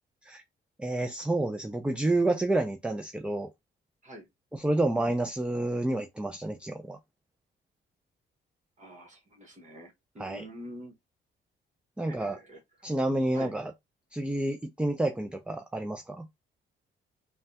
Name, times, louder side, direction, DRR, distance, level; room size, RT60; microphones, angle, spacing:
voice 1, 0.8-3.5 4.5-7.0 10.2-10.4 12.0-12.4 12.8-13.7 14.1-16.2, right 2 dB, 5° right, 0.4 m, -29 dB
voice 2, 8.8-10.9 12.0-12.9 13.3-13.5, equal, 40° right, 1.2 m, -46 dB
3.3 x 2.2 x 2.7 m
cardioid pair, 90°, 20 cm